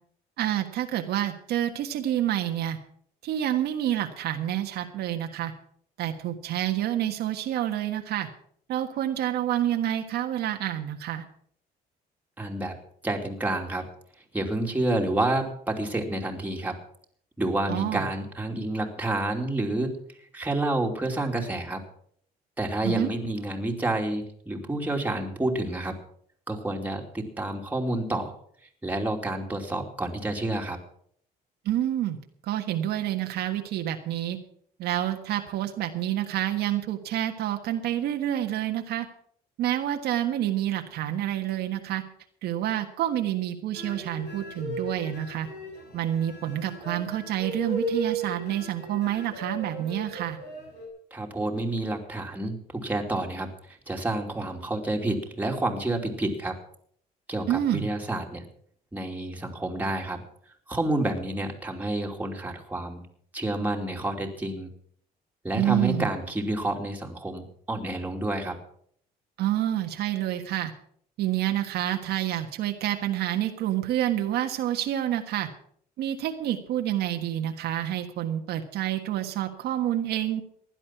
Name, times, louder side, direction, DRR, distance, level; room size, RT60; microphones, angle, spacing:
voice 1, 0.4-2.8 3.2-5.5 6.0-8.3 8.7-11.2 17.7-18.1 22.8-23.1 31.6-32.2 32.4-34.4 34.8-39.1 39.6-42.0 42.4-45.5 45.9-50.4 57.5-57.9 65.5-66.1 69.4-70.7 71.2-75.5 76.0-80.4, right 12 dB, 75° right, 4 dB, 1.5 m, -28 dB
voice 2, 12.4-12.7 13.0-13.9 14.3-16.8 17.4-20.0 20.3-21.8 22.6-26.0 26.5-28.3 28.8-30.8 51.1-56.6 57.3-58.4 58.9-60.2 60.7-63.1 63.3-64.7 65.4-68.6, right 2 dB, 10° right, 1 dB, 2.8 m, -29 dB
sound 1, 43.7-50.9, right 2 dB, 80° left, 5.8 m, -36 dB
16.0 x 11.0 x 5.9 m, 0.62 s
cardioid pair, 110°, 17 cm